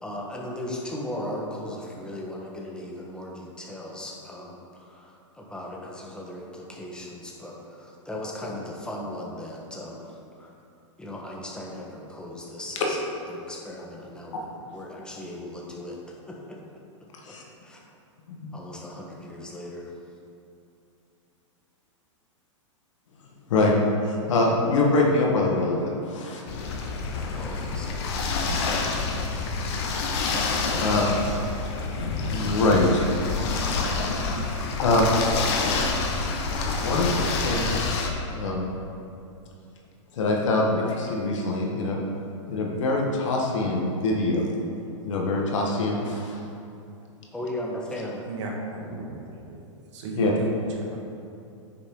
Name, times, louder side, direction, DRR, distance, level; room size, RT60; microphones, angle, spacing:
voice 1, 0.0-10.1 10.4-10.5 11.0-13.0 13.3-14.5 14.7-16.6 17.3-17.4 17.6-17.8 18.5-19.9 27.3-28.1 47.3-48.2, left 1 dB, 5° left, -3 dB, 1.5 m, -37 dB
voice 2, 24.3-26.4 30.7-31.2 32.0-33.1 34.8-35.1 35.7-36.1 36.7-38.7 40.1-42.0 42.5-44.5 45.0-46.4 50.1-50.3, left 2 dB, 70° left, -1 dB, 1.6 m, -24 dB
sound 1, 26.5-38.1, left 4 dB, 55° left, 1.3 m, -27 dB
voice 3, 48.2-49.6 49.9-50.5 50.8-51.0, right 3 dB, 65° right, -1 dB, 1.8 m, -34 dB
9.8 x 6.7 x 3.9 m, 2.6 s
hypercardioid pair, 125°, 16 cm